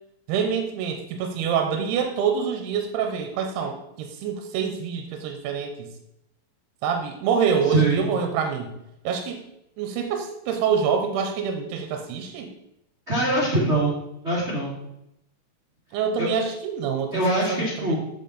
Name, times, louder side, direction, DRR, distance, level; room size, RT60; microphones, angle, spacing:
voice 1, 0.3-5.9 6.8-8.7 9.0-9.4 9.8-12.5 15.9-17.2 17.5-18.0, right 6 dB, 90° right, 5 dB, 2.8 m, -26 dB
voice 2, 7.7-8.1 13.1-13.9 14.2-14.7 16.2-16.3 17.1-18.0, right 1 dB, 30° right, -7 dB, 1.1 m, -23 dB
7.9 x 7.7 x 4.1 m, 0.84 s
omnidirectional pair, 4.7 m